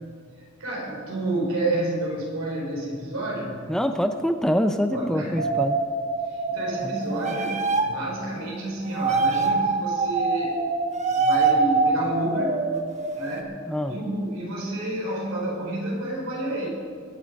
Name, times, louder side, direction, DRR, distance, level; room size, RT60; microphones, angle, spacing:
voice 1, 0.6-3.6 4.9-5.4 6.2-10.6 11.1-12.7 13.1-13.6 13.9-16.7, right 1 dB, 75° right, -3 dB, 4.7 m, -30 dB
voice 2, 3.7-5.8 6.8-7.4 13.7-14.0, equal, 5° left, 8 dB, 0.4 m, -25 dB
sound 1, 5.4-8.0 8.9-13.4, right 3 dB, 35° right, 1.1 m, -24 dB
21.5 x 8.6 x 5.2 m, 2.1 s
head